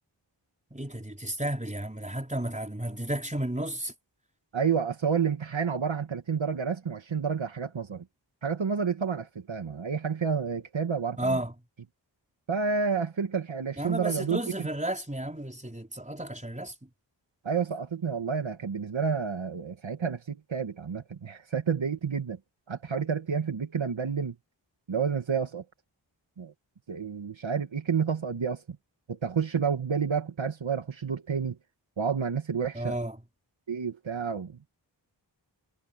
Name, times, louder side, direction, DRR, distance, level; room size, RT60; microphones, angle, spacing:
voice 1, 0.7-3.9 11.2-11.5 13.8-16.7 32.7-33.1, right 1 dB, 15° right, 4.8 m, -32 dB
voice 2, 4.5-8.1 8.4-11.4 12.5-14.7 17.4-22.4 22.7-24.4 24.9-25.7 26.4-26.5 26.9-28.8 29.1-31.6 32.0-33.0 33.7-34.6, right 6 dB, 80° right, 1.7 m, -30 dB
wide cardioid pair, 45°, 46 cm